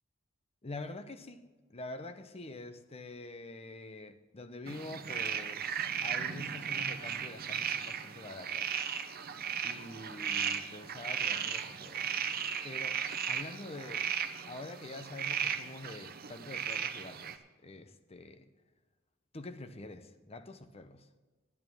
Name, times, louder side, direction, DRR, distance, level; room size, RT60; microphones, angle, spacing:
voice 1, 0.6-1.4 1.7-8.7 9.6-12.2 12.6-14.1 14.5-18.5 19.3-21.1, left 2 dB, 30° left, 0.8 m, -46 dB
sound 1, 4.7-17.3, right 8 dB, 50° right, 0.8 m, -36 dB
11.0 x 9.2 x 6.1 m
head